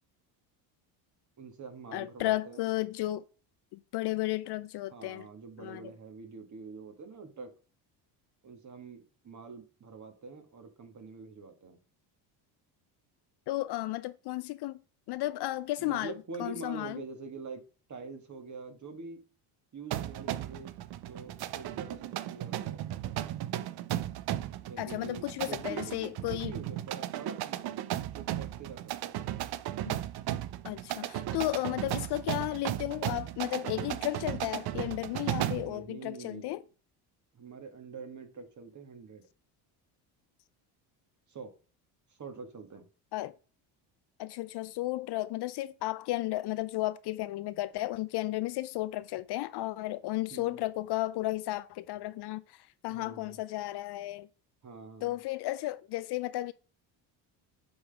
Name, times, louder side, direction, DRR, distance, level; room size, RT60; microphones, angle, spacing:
voice 1, 1.4-2.7 4.9-7.5 8.4-11.8 15.8-17.6 17.9-19.2 19.7-22.8 24.6-29.2 35.5-36.5 37.3-39.2 41.3-41.5 42.2-42.9 50.3-50.6 52.9-53.4 54.6-55.1, right 4 dB, 35° right, 1.7 m, -45 dB
voice 2, 1.9-3.2 3.7-5.3 5.6-5.9 13.5-14.8 15.1-16.1 16.4-17.0 24.8-26.5 29.8-30.0 30.6-36.6 43.1-43.4 44.2-54.3 55.0-56.5, left 17 dB, 55° left, 0.5 m, -34 dB
sound 1, 19.9-35.8, right 13 dB, 50° right, 0.6 m, -35 dB
7.8 x 3.9 x 3.4 m
supercardioid pair, 90°, 50 cm